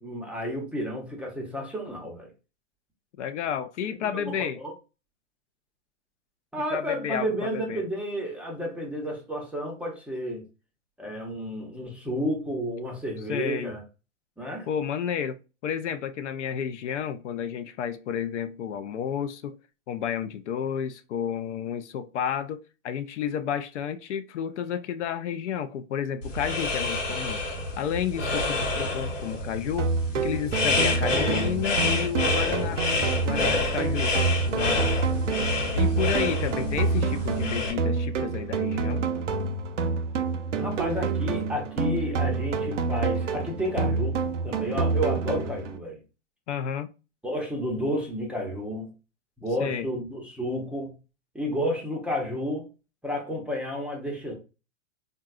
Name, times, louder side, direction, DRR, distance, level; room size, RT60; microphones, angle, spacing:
voice 1, 0.0-2.3 4.1-4.7 6.5-10.4 11.0-13.8 14.4-14.7 40.5-46.0 47.2-48.9 49.4-51.0 51.3-52.7 53.0-54.3, equal, 5° right, 0.5 m, -31 dB
voice 2, 3.2-4.6 6.7-7.8 13.3-13.8 14.7-15.4 15.6-19.6 19.9-27.4 27.8-34.2 34.4-35.1 35.8-39.1 46.5-46.9 49.6-49.9, left 8 dB, 70° left, 0.5 m, -31 dB
sound 1, 26.2-37.7, left 2 dB, 90° left, 1.1 m, -28 dB
sound 2, 29.8-45.8, right 4 dB, 75° right, 0.6 m, -28 dB
3.7 x 2.2 x 2.3 m
hypercardioid pair, 110°, 37 cm